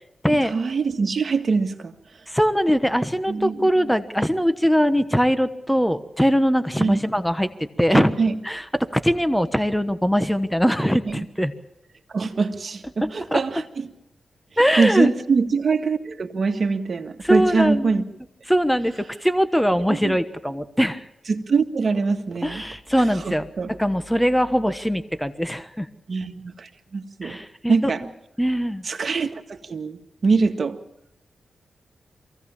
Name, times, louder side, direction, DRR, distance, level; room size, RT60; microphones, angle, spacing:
voice 1, 0.3-1.9 3.3-4.0 6.8-7.0 7.9-8.3 11.0-11.2 12.1-13.9 14.8-18.0 19.8-20.2 21.3-22.6 23.2-23.7 26.1-27.4 27.7-28.0 28.8-30.8, right 4 dB, 60° right, 5 dB, 1.8 m, -24 dB
voice 2, 2.3-7.5 7.8-8.1 8.4-11.5 13.0-13.4 14.6-15.1 17.2-18.0 18.5-21.0 22.4-25.9 27.2-27.9 28.4-28.8, equal, 5° left, 11 dB, 1.2 m, -21 dB
23.5 x 16.5 x 7.3 m, 0.89 s
cardioid pair, 55°, 0 cm